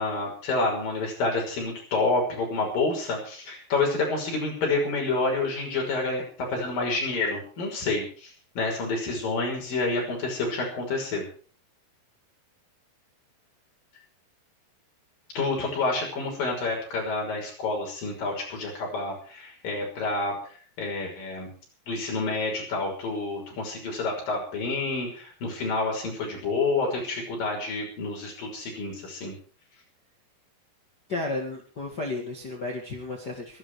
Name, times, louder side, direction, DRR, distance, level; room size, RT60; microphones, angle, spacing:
voice 1, 0.0-6.2 6.5-11.2 15.3-20.3 20.8-21.5 21.9-29.3, left 3 dB, 65° left, 0 dB, 7.6 m, -28 dB
voice 2, 31.1-33.6, left 2 dB, 35° left, 0 dB, 2.0 m, -33 dB
18.5 x 13.5 x 4.9 m, 0.41 s
omnidirectional pair, 4.4 m